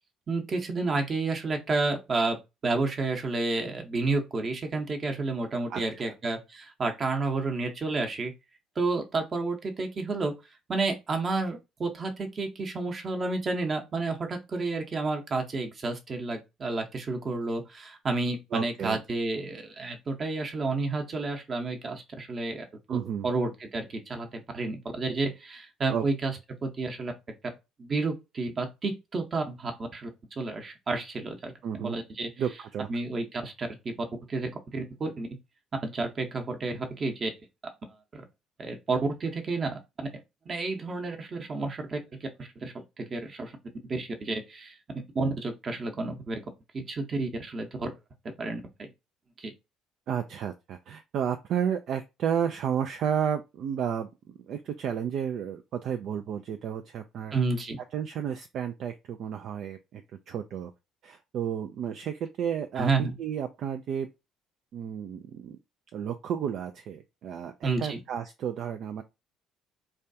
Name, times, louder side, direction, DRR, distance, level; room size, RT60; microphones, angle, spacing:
voice 1, 0.3-2.4 2.6-8.3 8.8-10.3 10.7-22.6 22.9-23.0 23.2-26.3 26.6-27.1 27.8-31.5 31.8-32.3 32.9-33.9 34.3-35.3 35.8-37.3 38.1-38.2 38.6-39.8 40.5-42.0 42.4-43.5 43.8-44.8 45.1-46.4 46.7-47.9 48.2-48.9 49.4-49.5 57.3-57.8 62.8-63.1 67.6-68.0, right 3 dB, 40° right, 0.9 m, -30 dB
voice 2, 5.7-6.1 18.5-19.0 22.9-23.3 25.9-26.0 31.6-32.0 32.4-32.9 50.1-57.3 57.9-60.7 61.0-64.1 64.7-65.6 65.9-69.0, right 8 dB, 60° right, 0.3 m, -32 dB
3.2 x 2.3 x 2.6 m
hypercardioid pair, 55°, 0 cm